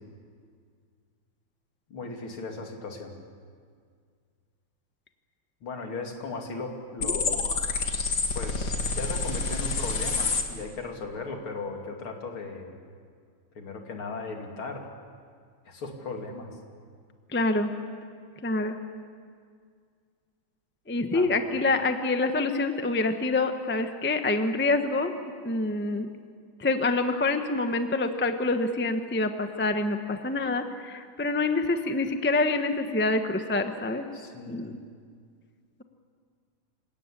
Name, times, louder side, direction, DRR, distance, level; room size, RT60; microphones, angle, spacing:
voice 1, 1.9-3.2 5.6-7.5 8.3-12.7 13.5-14.9 15.6-16.5 21.1-21.4 34.1-34.8, left 3 dB, 70° left, 2 dB, 3.4 m, -37 dB
sound 1, 7.0-10.4, left 4 dB, 50° left, 2.3 m, -28 dB
voice 2, 17.3-17.7 18.4-18.8 20.9-25.1 25.4-26.1 26.6-34.1 34.5-34.8, left 2 dB, 10° left, 7 dB, 0.7 m, -26 dB
27.5 x 17.5 x 10.0 m, 2.1 s
omnidirectional pair, 2.4 m